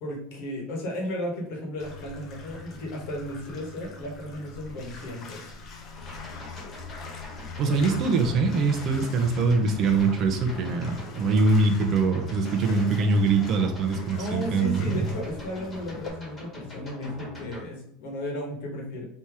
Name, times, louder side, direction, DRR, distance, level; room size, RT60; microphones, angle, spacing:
voice 1, 0.0-5.4 7.6-7.8 14.2-19.1, equal, 55° left, 0 dB, 1.2 m, -34 dB
Bathtub (filling or washing), 1.8-16.1, left 3 dB, 30° left, 0.6 m, -44 dB
sound 1, 5.9-17.6, left 3 dB, 15° left, 1.5 m, -41 dB
voice 2, 7.6-15.0, right 3 dB, 35° right, 5 dB, 0.6 m, -23 dB
3.5 x 2.9 x 4.6 m, 0.70 s
supercardioid pair, 165°, 0 cm